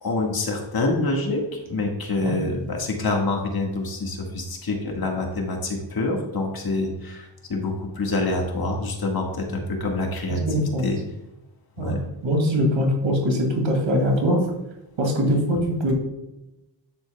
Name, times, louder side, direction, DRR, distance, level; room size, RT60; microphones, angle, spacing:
voice 1, 0.0-10.4 10.8-11.0 11.8-12.0, left 2 dB, 55° left, 1 dB, 1.7 m, -26 dB
voice 2, 10.3-10.9 11.8-12.0 12.2-14.4 15.0-15.9, equal, 85° right, 0 dB, 2.5 m, -22 dB
9.3 x 7.9 x 2.3 m, 0.95 s
cardioid pair, 90°, 45 cm